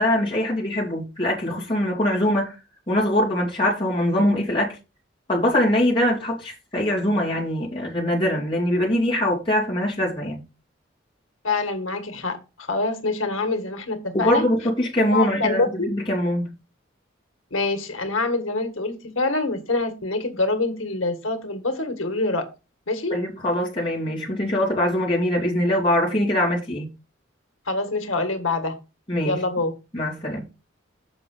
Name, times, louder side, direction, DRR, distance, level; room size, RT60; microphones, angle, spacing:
voice 1, 0.0-2.5 2.9-4.8 5.3-10.4 14.1-16.5 23.1-26.9 29.1-29.4 29.9-30.4, left 1 dB, 25° left, 2.5 m, -23 dB
voice 2, 11.4-14.4 15.1-15.9 17.5-22.5 22.9-23.2 27.7-28.7 29.2-29.7, left 3 dB, 90° left, 1.7 m, -25 dB
7.2 x 5.6 x 5.5 m
head